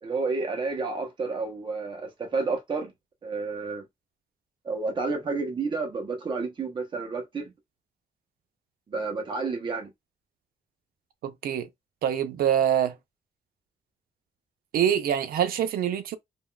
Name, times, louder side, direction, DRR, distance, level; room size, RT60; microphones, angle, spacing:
voice 1, 0.0-2.9 3.2-3.8 4.6-7.5 8.9-9.9, right 4 dB, 30° right, 0.8 m, -30 dB
voice 2, 11.2-11.7 12.0-13.0 14.7-16.2, right 9 dB, 85° right, 0.5 m, -25 dB
3.5 x 2.3 x 2.2 m
wide cardioid pair, 170°, 15 cm